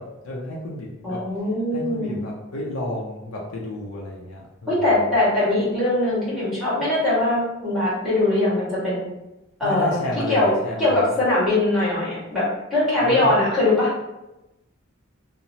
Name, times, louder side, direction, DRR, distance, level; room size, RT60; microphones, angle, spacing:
voice 1, 0.0-1.2 1.7-5.0 9.6-11.1 13.0-13.3, left 1 dB, 70° left, -3 dB, 0.4 m, -31 dB
voice 2, 1.0-2.2 4.7-9.0 9.6-10.0 10.3-10.5 10.8-12.4 12.7-13.9, left 2 dB, ahead, -10 dB, 1.4 m, -21 dB
2.9 x 2.0 x 2.6 m, 0.96 s
head